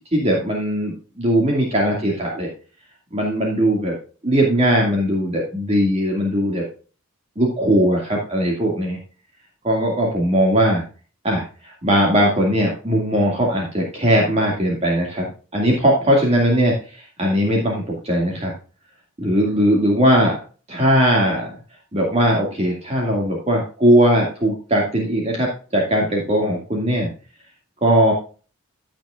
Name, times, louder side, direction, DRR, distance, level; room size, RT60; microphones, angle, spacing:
voice 1, 0.1-2.5 3.1-4.0 4.2-6.6 7.4-9.0 9.6-10.8 11.2-18.5 19.2-20.4 20.7-21.5 21.9-27.1 27.8-28.1, equal, 30° right, -2 dB, 2.1 m, -19 dB
15.0 x 6.2 x 2.4 m, 0.37 s
head